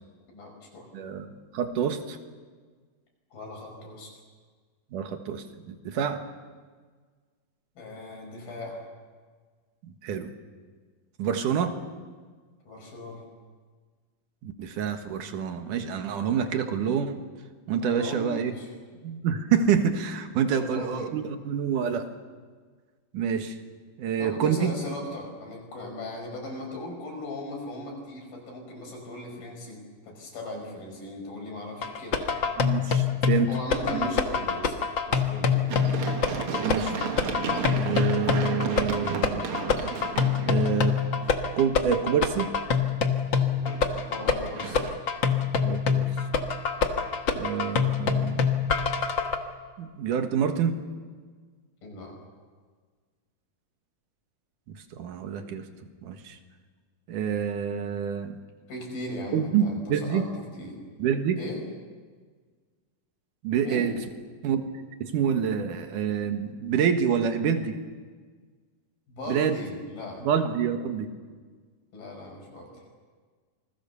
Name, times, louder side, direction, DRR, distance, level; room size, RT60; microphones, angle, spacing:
voice 1, 0.3-0.9 3.3-4.1 7.8-8.8 12.7-13.2 17.8-18.7 20.6-21.1 24.2-29.8 30.0-32.3 33.5-34.8 35.1-35.7 44.1-44.8 51.8-52.2 58.7-60.3 60.5-60.8 61.4-61.6 63.6-63.9 69.1-70.3 71.9-72.7, left 1 dB, 80° left, 1 dB, 7.5 m, -38 dB
voice 2, 0.9-2.2 4.9-6.2 9.8-10.3 11.2-11.8 14.4-17.1 17.7-18.5 19.0-22.1 23.1-23.5 24.0-24.7 32.6-33.5 33.9-34.1 36.6-36.9 37.7-39.4 40.4-41.0 41.5-42.6 45.6-46.1 47.3-48.5 49.8-50.8 55.0-55.6 56.0-56.4 57.1-58.4 59.3-60.3 61.0-61.4 63.4-63.9 64.4-67.8 69.3-69.6 70.2-71.1, right 7 dB, 65° right, 6 dB, 2.9 m, -27 dB
sound 1, 31.8-49.4, left 6 dB, 55° left, 1.3 m, -25 dB
Run, 35.7-41.5 43.4-44.9, right 6 dB, 50° right, 1.9 m, -34 dB
27.0 x 20.5 x 7.0 m, 1.5 s
omnidirectional pair, 4.2 m